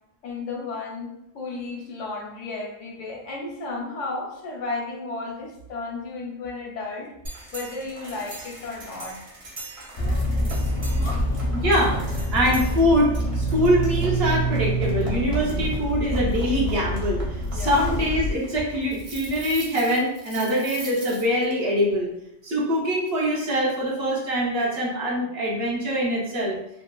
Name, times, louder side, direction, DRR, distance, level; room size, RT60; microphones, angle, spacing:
voice 1, 0.2-1.1 1.3-7.1 7.5-9.2 17.5-17.8, left 3 dB, 85° left, -1 dB, 1.0 m, -33 dB
sound 1, 7.2-21.5, right 1 dB, 45° right, 0.5 m, -37 dB
sound 2, 10.0-18.3, right 1 dB, 50° left, 0.5 m, -26 dB
voice 2, 11.5-13.1 13.3-22.1 22.4-26.6, equal, 60° right, -5 dB, 0.9 m, -24 dB
3.1 x 2.0 x 2.2 m, 0.83 s
omnidirectional pair, 1.2 m